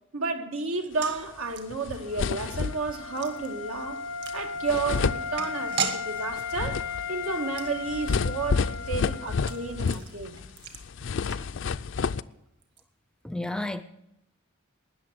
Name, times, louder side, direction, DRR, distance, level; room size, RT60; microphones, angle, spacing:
voice 1, 0.1-4.0 4.3-10.4, right 4 dB, 85° right, 1.6 m, -32 dB
sound 1, 0.7-12.0 12.2-12.3 12.6-12.8, right 6 dB, 50° right, 1.7 m, -40 dB
sound 2, 1.5-1.6 1.8-3.1 4.3-4.4 4.7-5.9 6.3-10.5 10.7-12.2, left 5 dB, 60° left, 0.4 m, -30 dB
Wind instrument woodwind instrument, 2.0-9.8, left 5 dB, 85° left, 1.0 m, -36 dB
voice 2, 11.2-11.5 13.2-13.8, left 1 dB, 5° left, 0.5 m, -33 dB
19.5 x 6.8 x 8.0 m
head